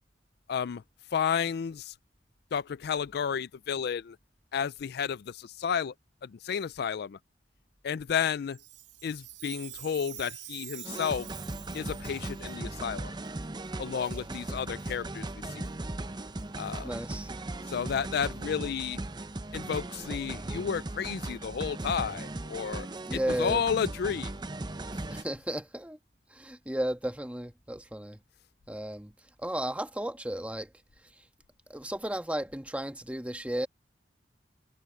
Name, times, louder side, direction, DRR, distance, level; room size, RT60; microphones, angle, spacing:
voice 1, 0.5-0.8 1.1-1.9 2.5-4.2 4.5-5.9 6.2-7.2 7.8-8.6 9.0-11.3 11.7-13.1 13.8-15.7 16.6-16.9 17.7-19.0 19.5-24.3 25.1-25.2, left 7 dB, 60° left, 0.4 m, -32 dB
Chime, 8.5-12.6 13.3-13.4 14.0-14.2 14.8-15.0 15.6-15.7 16.4-16.5 17.2-17.3, right 15 dB, 90° right, 2.0 m, -46 dB
sound 1, 10.8-25.2, right 2 dB, 25° right, 0.7 m, -38 dB
voice 2, 16.8-17.3 23.1-23.6 25.1-26.0 26.3-28.2 28.7-29.1 29.4-30.7 31.7-33.7, right 1 dB, 10° right, 1.5 m, -34 dB
head